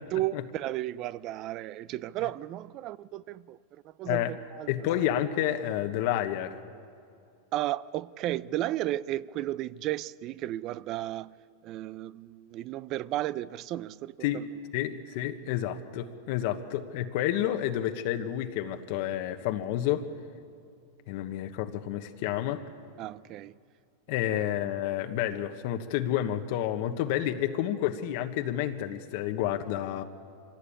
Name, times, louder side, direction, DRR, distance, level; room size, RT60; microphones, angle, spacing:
voice 1, 0.1-4.9 7.5-11.4 11.6-14.5 23.0-23.6 24.3-24.5, right 14 dB, 40° right, 0.5 m, -34 dB
voice 2, 4.1-4.4 4.7-6.6 14.2-14.4 14.7-20.1 21.1-22.6 24.1-30.0, left 12 dB, 60° left, 1.3 m, -30 dB
25.0 x 16.5 x 8.7 m
supercardioid pair, 130°, 0 cm